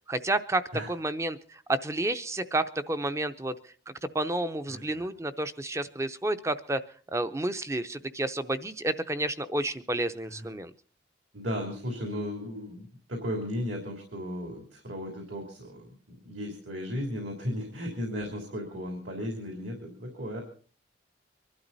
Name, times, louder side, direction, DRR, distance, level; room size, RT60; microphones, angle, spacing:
voice 1, 0.1-3.6 3.9-6.8 7.1-10.7, right 2 dB, 15° right, 11 dB, 0.6 m, -30 dB
voice 2, 4.7-5.1 10.2-10.5 11.3-20.4, equal, 70° right, 2 dB, 3.3 m, -35 dB
24.0 x 12.0 x 4.1 m, 0.43 s
head